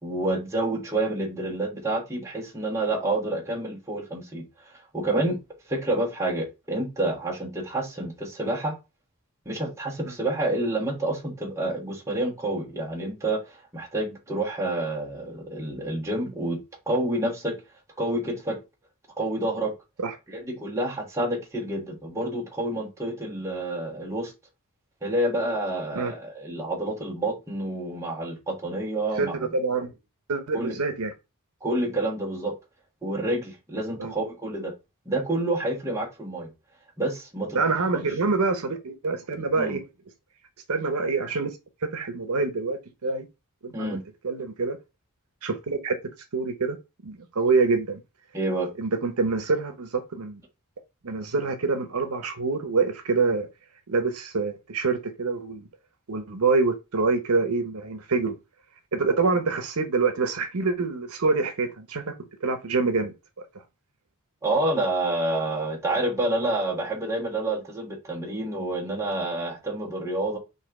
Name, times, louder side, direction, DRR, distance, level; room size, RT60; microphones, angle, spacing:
voice 1, 0.0-5.4 5.7-8.7 9.4-16.6 16.9-17.6 18.0-18.6 19.2-19.7 20.3-24.3 25.0-29.5 30.5-30.8 31.6-32.5 33.0-34.7 35.0-36.5 37.0-37.6 37.9-38.1 39.6-39.8 43.7-44.0 48.3-48.7 64.4-70.4, right 1 dB, 15° right, 1.4 m, -28 dB
voice 2, 29.2-29.9 30.3-31.1 34.0-34.1 37.5-39.8 40.7-41.5 41.8-43.3 43.6-44.0 44.2-44.8 45.4-46.0 46.3-46.8 47.0-48.0 48.8-50.4 51.0-53.5 53.9-55.7 56.1-58.4 58.9-62.1 62.4-63.1, right 4 dB, 75° right, 0.8 m, -26 dB
4.1 x 2.7 x 4.7 m
head